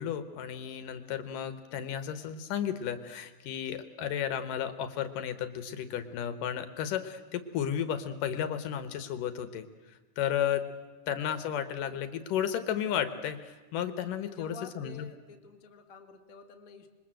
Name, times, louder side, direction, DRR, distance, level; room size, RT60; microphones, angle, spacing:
voice 1, 0.0-9.7 10.2-10.7 11.1-15.1, left 9 dB, 75° left, 11 dB, 2.7 m, -33 dB
voice 2, 14.1-16.9, left 6 dB, 30° left, 4 dB, 2.0 m, -49 dB
26.5 x 22.5 x 7.7 m, 1.2 s
omnidirectional pair, 4.0 m